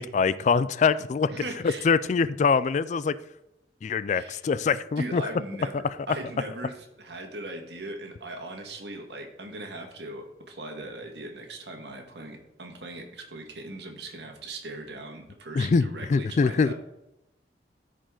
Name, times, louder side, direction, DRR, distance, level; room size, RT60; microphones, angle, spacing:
voice 1, 0.0-3.2 3.8-5.2 15.5-16.7, left 5 dB, 40° left, 17 dB, 0.3 m, -24 dB
voice 2, 1.3-1.9 4.1-4.4 5.0-16.7, right 2 dB, 70° right, 3 dB, 1.8 m, -39 dB
14.0 x 5.1 x 3.8 m, 0.89 s
head